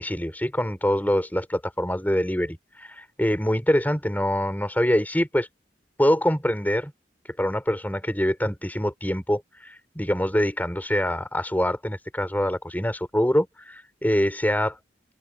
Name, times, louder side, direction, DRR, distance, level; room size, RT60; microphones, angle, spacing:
voice 1, 0.0-5.5 6.0-6.9 7.2-14.8, equal, 10° left, 6.3 m, -25 dB
open air
head